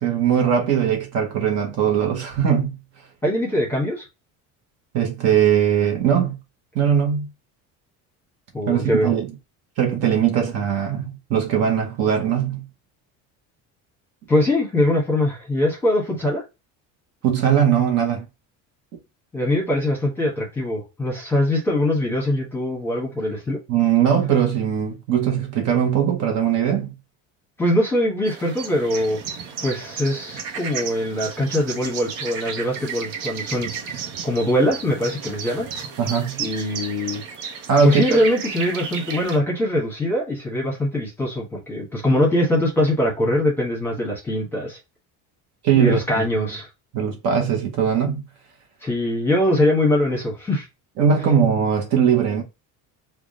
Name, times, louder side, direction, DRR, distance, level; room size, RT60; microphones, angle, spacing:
voice 1, 0.0-2.7 4.9-6.4 6.7-7.3 8.7-9.3 9.8-12.6 17.2-18.2 23.7-26.9 36.0-36.4 37.7-38.0 45.6-46.5 46.9-48.2 51.0-52.4, right 8 dB, 45° right, 0.9 m, -20 dB
voice 2, 3.2-4.0 8.5-9.1 14.3-16.4 19.3-23.6 27.6-29.2 29.6-35.7 36.4-37.2 37.8-44.8 45.7-46.7 48.8-50.7, left 1 dB, 5° left, 1.2 m, -22 dB
sound 1, 28.2-39.4, right 6 dB, 65° right, 1.0 m, -33 dB
3.5 x 2.4 x 3.7 m
cardioid pair, 180°, 35 cm